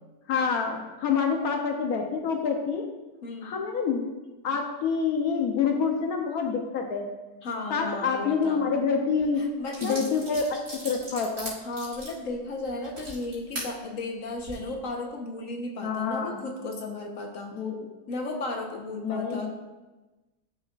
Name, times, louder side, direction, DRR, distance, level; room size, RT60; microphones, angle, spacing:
voice 1, 0.3-2.8 3.4-4.0 4.4-7.1 7.7-9.4 9.8-11.5 15.8-16.4 17.5-17.8 19.0-19.5, left 5 dB, 75° left, 2 dB, 1.2 m, -27 dB
voice 2, 3.2-3.6 7.4-8.7 9.4-10.0 11.6-17.5 18.1-19.5, left 2 dB, 60° left, 2 dB, 1.4 m, -34 dB
sound 1, 9.2-9.3 9.7-13.7 14.3-14.5, right 1 dB, 80° right, 2.8 m, -39 dB
11.5 x 6.3 x 2.4 m, 1.1 s
omnidirectional pair, 1.6 m